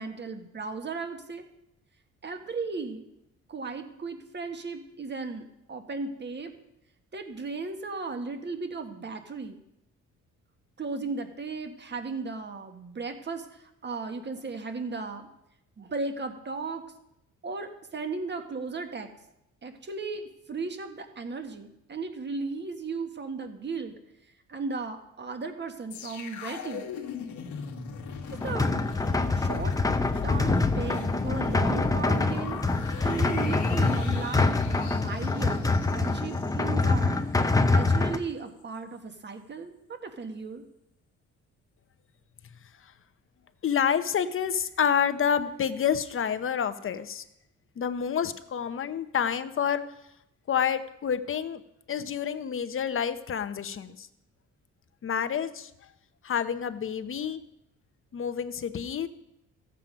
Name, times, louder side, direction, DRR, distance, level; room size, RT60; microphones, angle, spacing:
voice 1, 0.0-1.4 2.2-3.1 3.5-6.5 7.1-9.6 10.8-15.3 15.8-16.8 17.4-19.1 19.6-23.9 24.5-26.9 28.3-28.7 29.3-29.7 30.2-32.6 33.0-37.2 37.6-40.6, right 4 dB, 35° right, 6 dB, 1.6 m, -36 dB
sound 1, 25.9-37.1 37.4-37.6, left 7 dB, 75° left, 1.6 m, -38 dB
sound 2, 28.3-38.2, left 3 dB, 10° left, 0.8 m, -25 dB
voice 2, 43.6-47.2 47.8-49.8 50.5-51.6 51.9-54.1 55.0-55.7 56.2-57.4 58.1-59.1, left 8 dB, 45° left, 11 dB, 0.9 m, -28 dB
14.5 x 7.7 x 5.2 m, 0.84 s
cardioid pair, 90°, 30 cm